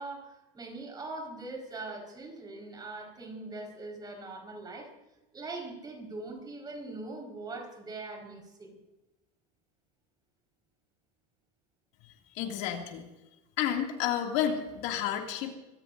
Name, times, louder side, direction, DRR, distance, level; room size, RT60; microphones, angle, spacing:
voice 1, 0.0-4.9 5.3-8.8, right 2 dB, 20° right, 2 dB, 4.8 m, -41 dB
voice 2, 12.3-13.0 13.6-15.5, left 9 dB, 70° left, 2 dB, 2.5 m, -30 dB
24.5 x 18.0 x 2.6 m, 1.0 s
supercardioid pair, 135°, 18 cm